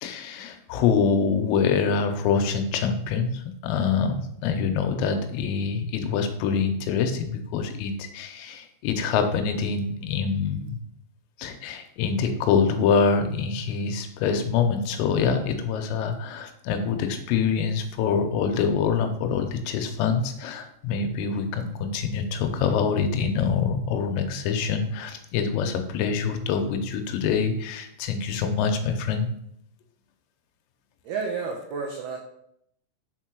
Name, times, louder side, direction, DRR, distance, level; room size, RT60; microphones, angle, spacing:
voice 1, 0.0-10.8 11.4-29.3, left 6 dB, 85° left, 6 dB, 3.4 m, -25 dB
voice 2, 31.0-32.2, right 5 dB, 90° right, 0 dB, 2.2 m, -31 dB
7.3 x 4.6 x 6.1 m, 0.73 s
omnidirectional pair, 6.0 m